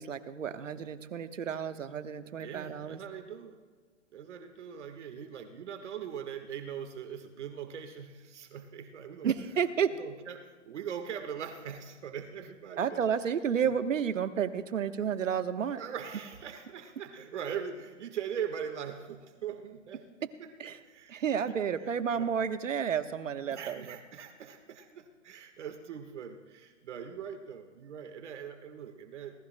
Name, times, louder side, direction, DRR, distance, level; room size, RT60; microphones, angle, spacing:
voice 1, 0.0-3.0 9.2-9.9 12.8-15.8 20.6-20.8 21.1-24.0, right 7 dB, 80° right, 10 dB, 1.2 m, -31 dB
voice 2, 2.4-3.6 4.1-9.3 10.0-13.0 13.6-13.7 15.7-20.0 20.4-20.5 20.8-21.6 22.2-22.3 23.5-29.4, right 8 dB, 65° right, 6 dB, 1.5 m, -41 dB
25.5 x 18.5 x 2.2 m, 1.5 s
hypercardioid pair, 135°, 38 cm